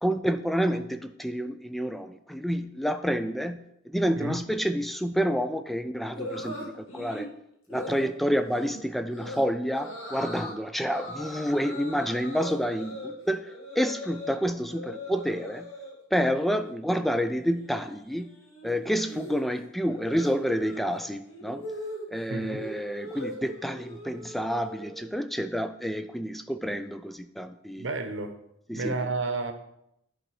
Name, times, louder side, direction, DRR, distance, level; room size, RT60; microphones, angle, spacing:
voice 1, 0.0-3.6 3.9-7.3 7.7-13.5 13.8-15.7 16.1-18.3 18.6-21.7 22.1-27.9 28.7-28.9, equal, ahead, 10 dB, 0.3 m, -29 dB
sound 1, 6.2-7.3 7.7-8.1 8.5-8.8 9.1-9.4 9.8-10.6 10.9-14.4 14.7-15.9 16.3-16.7 16.9-25.1, left 1 dB, 85° left, 1.9 m, -40 dB
voice 2, 22.3-22.7 27.8-28.3 28.7-29.5, right 3 dB, 65° right, 7 dB, 0.9 m, -31 dB
10.5 x 3.9 x 4.7 m, 0.79 s
head